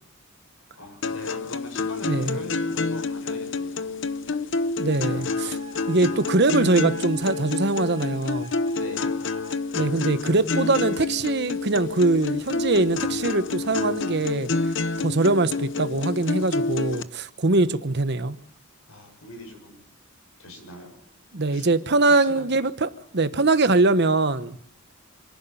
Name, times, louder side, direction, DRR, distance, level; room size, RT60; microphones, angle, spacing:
voice 1, 0.7-4.0 8.7-9.1 18.9-19.8 20.4-21.0 21.5-21.7 22.2-22.4, left 1 dB, 85° left, 7.2 m, -41 dB
sound 1, 1.0-17.0, left 4 dB, 60° left, 0.8 m, -28 dB
voice 2, 2.0-2.4 4.8-5.6 5.9-8.5 9.7-14.5 15.0-18.4 21.3-24.6, right 2 dB, 55° right, 1.1 m, -22 dB
Wind instrument woodwind instrument, 4.9-9.6, right 1 dB, 25° right, 2.2 m, -45 dB
26.5 x 11.0 x 9.0 m
head